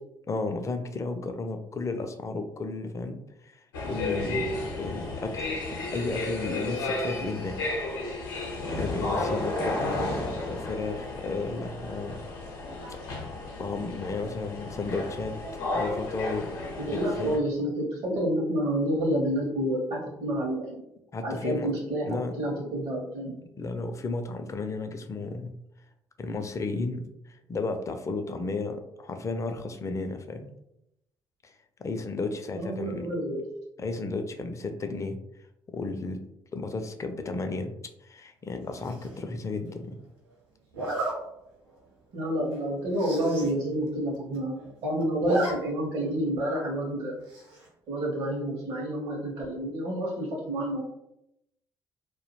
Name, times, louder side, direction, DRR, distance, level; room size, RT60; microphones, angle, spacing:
voice 1, 0.3-7.6 8.8-12.2 12.9-13.0 13.6-15.3 15.7-16.6 16.8-17.3 21.1-21.7 22.1-22.3 23.6-25.6 26.2-27.0 27.3-30.5 31.4-31.5 31.8-33.1 33.8-35.2 35.7-36.2 36.5-37.7 38.0-40.0, left 3 dB, 25° left, 7 dB, 0.4 m, -33 dB
sound 1, 3.7-17.4, left 2 dB, 75° left, 0.6 m, -33 dB
voice 2, 16.8-20.8 21.2-23.4 28.7-28.8 32.5-33.4 42.1-47.2 47.9-50.8, right 1 dB, 55° right, -4 dB, 0.6 m, -29 dB
Zipper (clothing), 38.8-39.2 40.7-41.1 41.7-41.9 42.2-42.3 42.5-42.6 42.9-43.5 43.9-44.0 44.1-44.7 45.0-45.5 45.9-46.0 47.3-47.7, right 2 dB, 85° right, 0.8 m, -32 dB
2.2 x 2.1 x 3.0 m, 0.83 s
figure-of-eight pair, 45°, 12 cm